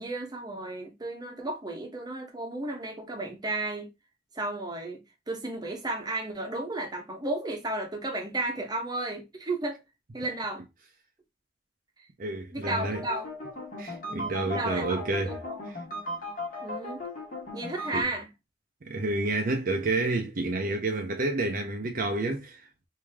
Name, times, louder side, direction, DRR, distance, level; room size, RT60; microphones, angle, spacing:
voice 1, 0.0-3.9 4.3-5.0 5.3-9.8 10.1-10.6 12.5-13.3 14.1-15.6 16.6-17.0 17.5-18.3, right 2 dB, 25° right, 0.9 m, -33 dB
voice 2, 12.2-13.0 13.8-15.4 17.9-18.1 18.8-22.7, right 2 dB, 50° right, 0.6 m, -29 dB
sound 1, 12.6-18.0, left 1 dB, 50° left, 1.3 m, -37 dB
3.2 x 2.7 x 3.4 m
head